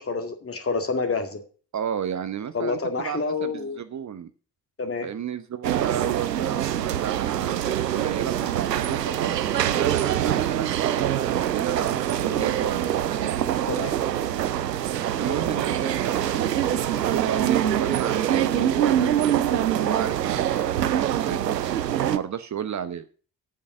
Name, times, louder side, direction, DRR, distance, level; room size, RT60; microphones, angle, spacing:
voice 1, 0.0-1.4 2.5-3.8 4.8-5.1 13.2-13.4 13.7-13.9, left 4 dB, 30° left, 7 dB, 2.0 m, -28 dB
voice 2, 1.7-4.3 5.0-9.3 9.7-12.9 15.2-16.6 16.9-21.5 22.1-23.1, right 8 dB, 35° right, 11 dB, 0.9 m, -32 dB
sound 1, 5.6-22.2, right 11 dB, 90° right, 0.6 m, -24 dB
8.3 x 7.6 x 7.6 m, 0.40 s
figure-of-eight pair, 40°, 48 cm